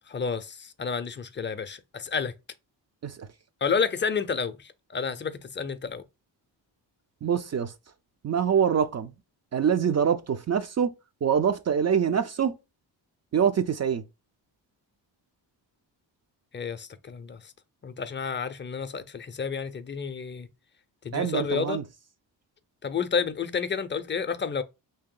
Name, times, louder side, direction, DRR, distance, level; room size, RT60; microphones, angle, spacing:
voice 1, 0.1-2.3 3.6-4.6 4.9-6.0 16.5-17.4 17.8-20.5 21.0-21.8 22.8-24.6, left 6 dB, 25° left, 0.5 m, -30 dB
voice 2, 7.2-7.7 8.2-9.1 9.5-10.9 11.2-12.5 13.3-14.0 21.1-21.8, right 7 dB, 40° right, 0.4 m, -25 dB
3.0 x 2.8 x 3.7 m
cardioid pair, 75°, 44 cm